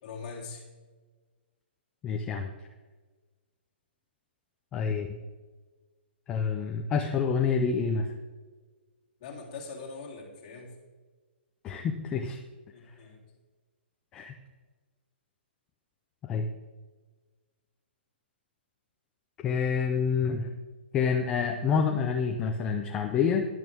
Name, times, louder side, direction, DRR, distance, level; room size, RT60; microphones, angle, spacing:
voice 1, 0.0-0.6 9.2-10.7 12.7-13.3, left 4 dB, 30° left, -2 dB, 2.9 m, -42 dB
voice 2, 2.0-2.5 4.7-5.2 6.3-8.1 11.6-12.4 14.1-14.3 16.3-16.5 19.4-20.5 20.9-23.5, left 6 dB, 10° left, 3 dB, 0.5 m, -27 dB
14.5 x 11.0 x 3.5 m, 1.3 s
hypercardioid pair, 170°, 6 cm